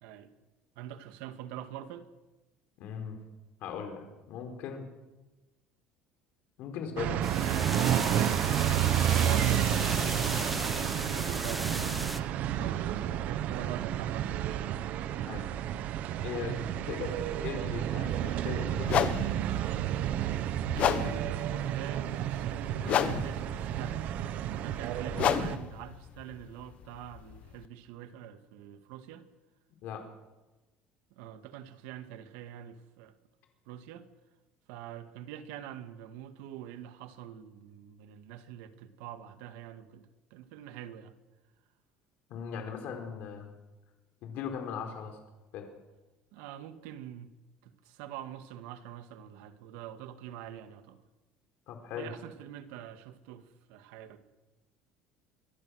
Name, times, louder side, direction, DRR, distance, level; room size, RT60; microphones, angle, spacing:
voice 1, 0.8-2.1 8.4-12.2 12.6-14.7 17.0-17.2 20.7-24.1 24.5-29.3 31.1-33.1 33.7-34.1 34.7-41.1 46.3-47.3 47.6-51.0 52.0-54.2, right 10 dB, 85° right, 2.1 m, -44 dB
voice 2, 2.8-3.2 3.6-4.9 6.6-7.3 12.5-12.7 15.2-15.5 16.2-19.1 29.8-30.0 42.3-43.5 44.2-45.2 45.5-45.7 51.7-52.1, left 7 dB, 55° left, 4.3 m, -39 dB
sound 1, 7.0-25.6, right 11 dB, 50° right, 1.1 m, -31 dB
sound 2, 7.2-12.2, equal, ahead, 1.0 m, -35 dB
sound 3, 18.1-18.2 18.8-27.7, left 9 dB, 40° left, 1.3 m, -33 dB
24.5 x 23.0 x 6.5 m
cardioid pair, 165°, 3 cm